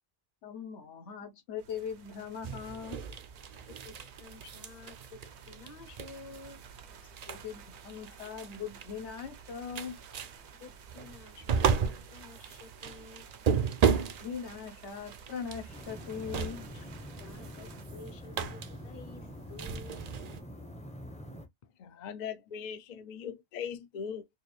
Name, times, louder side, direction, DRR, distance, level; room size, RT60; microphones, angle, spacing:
voice 1, 0.4-3.0 7.3-10.0 14.0-16.9, left 7 dB, 85° left, 1.2 m, -40 dB
sound 1, 1.6-17.9, right 7 dB, 80° right, 1.0 m, -54 dB
sound 2, 2.4-20.4, right 7 dB, 50° right, 0.5 m, -35 dB
voice 2, 3.6-6.6 10.6-13.3 17.2-20.0, left 4 dB, 40° left, 0.8 m, -51 dB
sound 3, 15.7-21.5, equal, 10° left, 0.5 m, -45 dB
voice 3, 21.8-24.3, left 7 dB, 60° left, 0.5 m, -40 dB
4.3 x 2.5 x 3.2 m
omnidirectional pair, 1.1 m